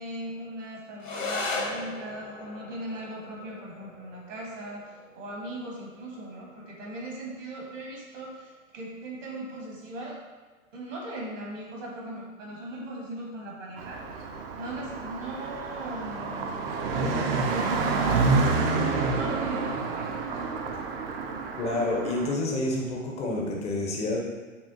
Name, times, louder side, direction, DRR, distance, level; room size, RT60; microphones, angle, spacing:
voice 1, 0.0-10.2 10.7-14.0 14.5-16.6 16.9-20.2, right 1 dB, 65° right, -3 dB, 1.4 m, -39 dB
sound 1, 1.0-10.0, left 2 dB, 70° left, 1.0 m, -39 dB
Car passing by, 13.8-22.3, right 4 dB, 45° right, 0.5 m, -28 dB
voice 2, 21.6-24.2, left 2 dB, 15° left, -1 dB, 0.5 m, -28 dB
5.5 x 2.4 x 2.6 m, 1.3 s
figure-of-eight pair, 100°, 41 cm